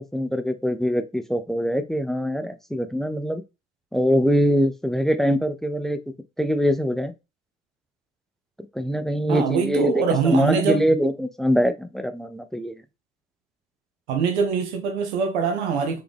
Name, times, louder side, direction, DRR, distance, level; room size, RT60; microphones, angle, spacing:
voice 1, 0.0-3.4 3.9-6.0 6.4-7.1 8.7-12.8, equal, ahead, 0.5 m, -23 dB
voice 2, 9.3-10.8 14.1-16.0, right 6 dB, 75° right, 0.7 m, -23 dB
4.8 x 3.1 x 3.4 m
figure-of-eight pair, 45°, 34 cm